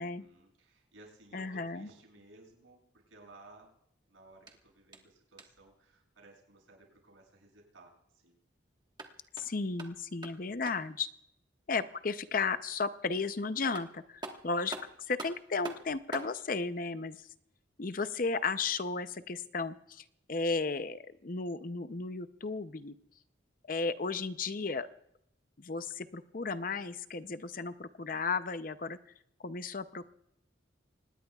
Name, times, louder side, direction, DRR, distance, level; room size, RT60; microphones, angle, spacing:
voice 1, 0.0-3.7 4.1-8.4 10.1-10.5, right 2 dB, 85° right, 0 dB, 7.3 m, -58 dB
voice 2, 1.3-1.9 9.4-11.1 11.7-14.7 15.1-17.3 17.8-22.9 23.7-24.9 25.6-29.0 29.4-30.0, left 4 dB, 45° left, 12 dB, 0.6 m, -34 dB
sound 1, 4.4-5.7 8.8-11.0 13.3-13.4 13.7-16.4, right 2 dB, 20° right, 1.4 m, -46 dB
25.5 x 19.5 x 2.4 m, 0.75 s
head